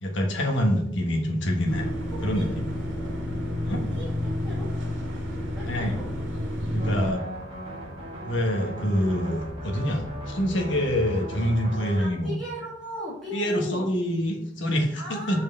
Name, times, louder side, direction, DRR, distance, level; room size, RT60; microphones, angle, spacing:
voice 1, 0.0-1.9 2.2-2.7 3.6-3.8 5.6-6.0 6.7-7.2 8.2-12.3 13.3-15.4, equal, 70° left, 2 dB, 1.3 m, -26 dB
sound 1, 1.7-7.1, left 1 dB, 70° right, 2.0 m, -30 dB
voice 2, 2.1-2.5 3.9-4.7 5.5-6.1 12.0-13.9 15.0-15.4, left 1 dB, ahead, -9 dB, 1.7 m, -37 dB
sound 2, 6.8-12.0, right 1 dB, 30° right, 1.5 m, -37 dB
5.5 x 4.7 x 3.9 m, 0.72 s
head